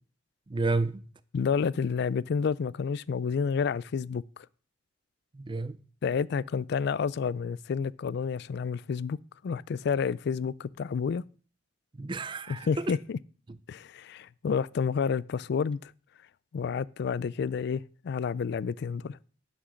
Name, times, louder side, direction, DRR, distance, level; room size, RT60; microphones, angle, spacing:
voice 1, 0.5-1.1 5.3-5.8 12.0-13.0 13.5-13.6, right 3 dB, 25° right, 0.4 m, -31 dB
voice 2, 1.3-4.2 6.0-9.2 9.4-11.2 12.5-13.2 13.7-15.9 16.5-19.2, left 6 dB, 60° left, 0.3 m, -30 dB
9.6 x 6.0 x 6.3 m
head